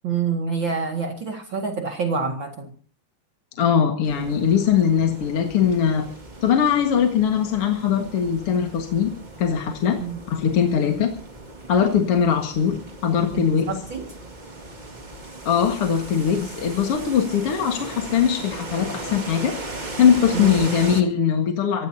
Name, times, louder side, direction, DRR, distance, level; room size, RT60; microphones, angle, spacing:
voice 1, 0.0-2.7 10.0-10.2 10.8-11.0 13.3-14.1 20.3-20.7, right 5 dB, 40° right, 3 dB, 2.2 m, -27 dB
voice 2, 3.6-6.1 6.4-9.1 9.4-10.0 10.3-11.2 11.7-12.8 13.0-13.8 15.5-19.5 20.0-21.9, left 8 dB, 50° left, 3 dB, 2.3 m, -21 dB
sound 1, 4.0-21.0, right 2 dB, 20° right, 1.1 m, -37 dB
24.5 x 16.5 x 2.8 m, 0.40 s
omnidirectional pair, 3.9 m